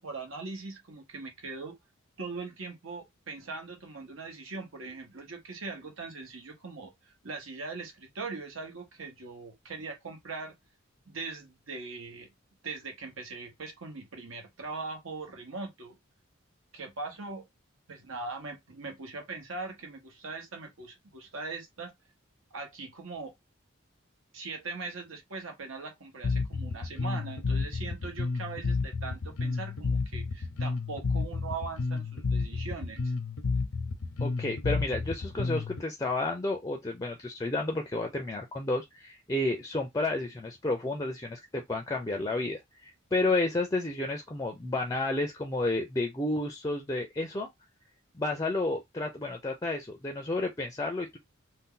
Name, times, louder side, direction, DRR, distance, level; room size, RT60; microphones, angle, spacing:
voice 1, 0.0-1.8 2.2-10.5 11.1-12.3 12.6-16.0 16.7-17.4 17.9-21.9 22.5-23.3 24.3-33.1, right 3 dB, 75° right, 1.1 m, -41 dB
Bass guitar, 26.2-35.8, left 4 dB, 80° left, 0.6 m, -31 dB
voice 2, 34.2-47.5 48.1-51.2, left 2 dB, 15° left, 0.4 m, -31 dB
2.6 x 2.2 x 3.7 m
head